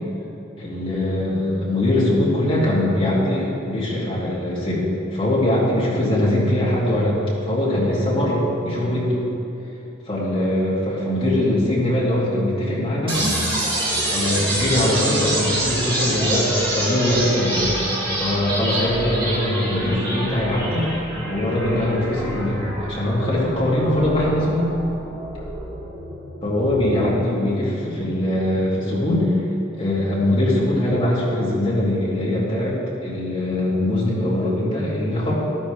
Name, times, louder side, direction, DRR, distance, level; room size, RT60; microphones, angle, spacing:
voice 1, 0.6-4.9 5.1-7.1 7.4-9.3 10.1-13.4 14.1-17.8 18.2-20.9 21.2-24.7 26.4-29.3 29.8-32.8 33.0-35.3, left 1 dB, 25° left, -8 dB, 2.8 m, -22 dB
sound 1, 13.1-27.1, right 1 dB, 25° right, 3.0 m, -27 dB
12.5 x 12.0 x 3.6 m, 2.8 s
head